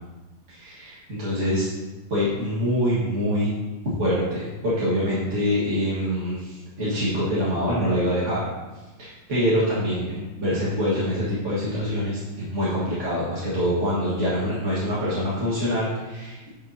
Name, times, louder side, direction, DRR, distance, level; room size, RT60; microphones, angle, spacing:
voice 1, 0.5-1.7 2.1-3.5 4.0-8.5 9.0-16.5, equal, 35° right, -10 dB, 1.9 m, -25 dB
9.3 x 6.6 x 2.8 m, 1.1 s
omnidirectional pair, 2.4 m